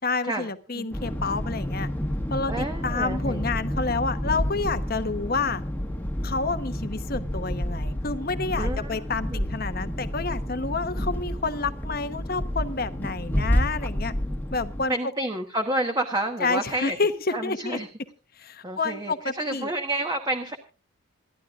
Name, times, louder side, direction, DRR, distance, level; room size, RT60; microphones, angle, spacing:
voice 1, 0.0-1.9 2.3-5.6 6.2-14.1 14.5-14.9 16.4-17.8 18.4-19.7, left 3 dB, 45° left, 11 dB, 1.0 m, -29 dB
sound 1, 0.9-14.8, equal, 10° left, 1.3 m, -29 dB
voice 2, 2.5-3.5 8.5-9.5 14.9-17.0 17.3-17.9 18.6-20.6, right 1 dB, 20° right, 5 dB, 1.2 m, -29 dB
27.5 x 11.0 x 2.5 m, 0.34 s
head